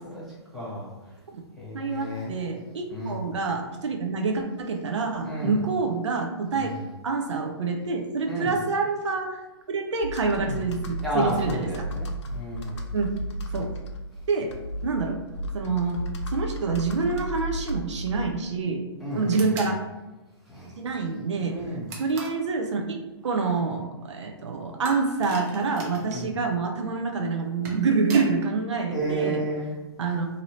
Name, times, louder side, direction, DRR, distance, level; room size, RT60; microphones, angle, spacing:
voice 1, 0.5-0.9 1.6-2.3 2.9-3.2 5.2-5.6 6.5-6.8 8.3-8.5 10.4-10.6 11.0-12.8 19.0-19.3 20.5-20.7 21.5-21.9 26.1-26.3 28.9-29.8, equal, ahead, -9 dB, 1.2 m, -31 dB
voice 2, 1.7-6.7 7.0-9.4 9.7-11.7 12.9-13.1 13.5-13.7 14.3-14.5 14.8-15.2 15.5-16.0 16.3-18.8 19.1-19.8 20.8-21.5 22.0-29.4 30.0-30.3, right 4 dB, 85° right, 3 dB, 0.5 m, -27 dB
Computer keyboard, 10.0-18.6, equal, 75° left, 0.5 m, -34 dB
sound 1, 19.3-19.8 21.9-22.4 24.8-26.2 27.4-28.3, right 2 dB, 35° right, 0.7 m, -38 dB
2.7 x 2.6 x 3.0 m, 1.1 s
hypercardioid pair, 140°, 15 cm